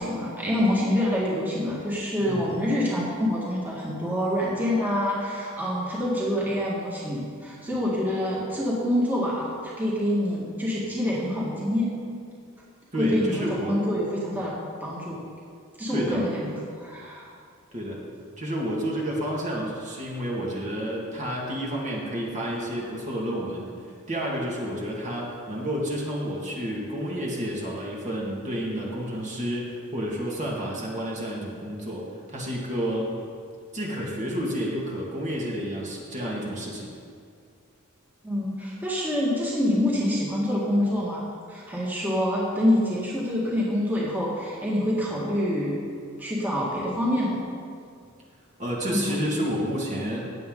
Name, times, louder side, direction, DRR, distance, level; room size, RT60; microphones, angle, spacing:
voice 1, 0.0-11.9 13.0-14.5 14.8-15.2 15.8-17.3 38.2-41.2 41.5-45.7 46.2-47.4 48.9-49.2, left 1 dB, 10° right, -6 dB, 1.9 m, -26 dB
voice 2, 12.9-13.8 15.9-16.3 17.7-18.0 18.4-33.2 33.7-36.9 48.6-50.3, equal, 35° right, -3 dB, 2.1 m, -30 dB
16.0 x 9.0 x 3.9 m, 2.2 s
head